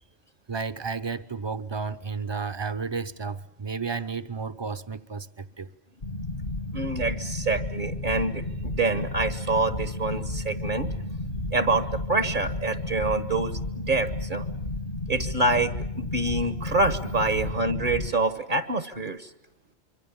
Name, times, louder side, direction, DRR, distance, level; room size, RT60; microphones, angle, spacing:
voice 1, 0.5-5.7, right 5 dB, 25° right, 0.9 m, -32 dB
sound 1, 6.0-18.1, left 2 dB, 50° left, 1.4 m, -33 dB
voice 2, 6.7-10.9 11.5-14.4 15.1-19.3, right 2 dB, 50° right, 1.3 m, -26 dB
26.0 x 24.0 x 7.3 m
omnidirectional pair, 1.1 m